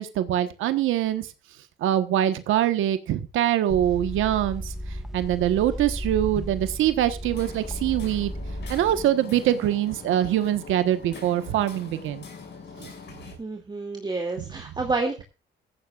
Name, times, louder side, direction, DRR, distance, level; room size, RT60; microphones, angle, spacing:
voice 1, 0.0-1.3 1.8-4.7 5.1-8.3 8.7-12.2 12.8-12.9, right 12 dB, 85° right, 10 dB, 1.2 m, -24 dB
sound 1, 3.7-9.0, equal, ahead, 1.4 m, -34 dB
Hammer, 7.2-13.3, left 5 dB, 60° left, 6.5 m, -43 dB
voice 2, 13.4-15.2, right 3 dB, 20° right, 3 dB, 2.5 m, -29 dB
17.0 x 14.5 x 2.4 m, 0.30 s
cardioid pair, 90°, 20 cm